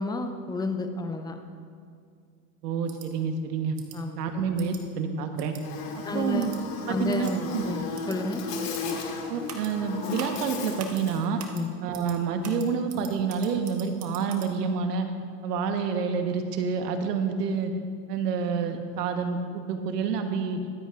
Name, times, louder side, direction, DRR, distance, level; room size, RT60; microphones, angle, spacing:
voice 1, 0.0-1.4 3.9-4.2 6.0-6.5 6.9-8.4 11.5-11.7, left 2 dB, 10° left, 6 dB, 0.7 m, -31 dB
voice 2, 2.6-3.8 4.1-5.5 6.0-6.5 6.9-7.6 9.3-11.4 11.8-15.1 15.4-17.7 18.1-20.6, right 5 dB, 75° right, 6 dB, 1.4 m, -28 dB
sound 1, 2.9-3.1 3.8-4.0 4.6-4.8 5.4-5.6 6.4-6.6 7.1-7.3 7.9-8.2 8.7-9.0 9.5-9.7 10.2-10.4 10.8-11.0 11.4-11.6 11.9-12.2 12.4-14.5, right 8 dB, 35° right, 1.4 m, -43 dB
Buzz, 5.6-11.2, left 4 dB, 55° left, 2.7 m, -35 dB
23.5 x 8.2 x 2.5 m, 2.3 s
hypercardioid pair, 115°, 47 cm